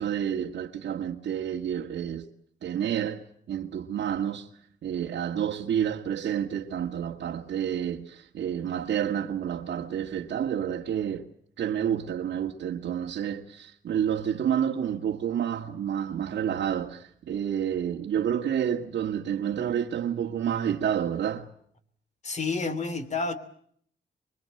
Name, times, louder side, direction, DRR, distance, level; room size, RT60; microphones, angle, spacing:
voice 1, 0.0-2.3 2.6-4.5 4.8-11.3 11.6-21.5, right 9 dB, 75° right, 1.9 m, -29 dB
voice 2, 22.2-23.3, left 4 dB, 40° left, 3.1 m, -29 dB
25.5 x 23.5 x 7.8 m
wide cardioid pair, 145°, 19 cm